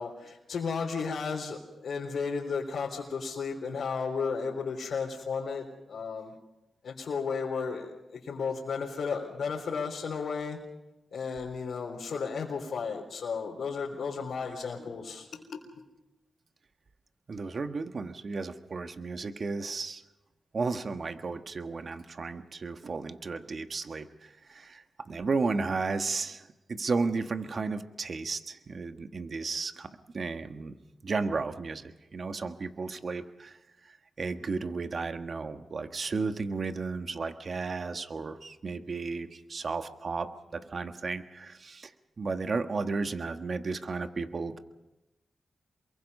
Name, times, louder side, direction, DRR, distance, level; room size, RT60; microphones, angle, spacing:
voice 1, 0.0-6.3 6.8-10.6 11.1-15.8, left 5 dB, 80° left, -2 dB, 3.6 m, -34 dB
voice 2, 17.3-20.0 20.5-29.9 30.1-30.7 31.0-33.6 33.9-41.9 42.2-44.6, right 4 dB, 60° right, 7 dB, 1.6 m, -34 dB
28.5 x 23.0 x 5.5 m, 1.0 s
cardioid pair, 50°, 0 cm